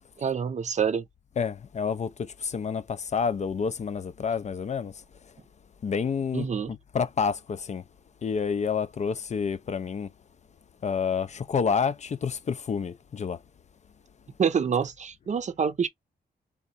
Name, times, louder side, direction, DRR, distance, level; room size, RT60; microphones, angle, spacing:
voice 1, 0.2-1.0 6.3-6.7 14.4-15.9, right 7 dB, 45° right, 0.6 m, -26 dB
voice 2, 1.4-4.9 5.8-7.8 8.2-10.1 10.8-13.4, left 6 dB, 40° left, 0.5 m, -29 dB
3.5 x 3.0 x 4.0 m
wide cardioid pair, 135°, 17 cm